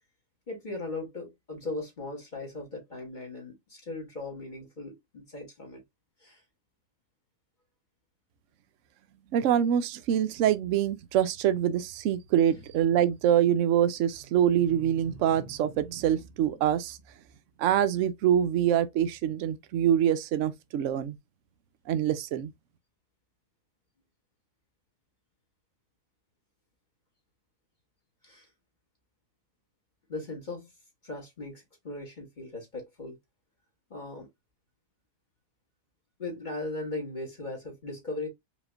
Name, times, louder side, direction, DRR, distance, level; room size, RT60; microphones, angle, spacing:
voice 1, 0.5-5.8 6.2-6.4 28.2-28.5 30.1-30.7 31.0-33.2 33.9-34.3 36.2-38.3, left 2 dB, 30° left, 1.8 m, -38 dB
voice 2, 9.3-17.0 17.6-21.2 21.9-22.5, right 10 dB, 65° right, 0.8 m, -25 dB
5.1 x 2.9 x 2.4 m
omnidirectional pair, 1.7 m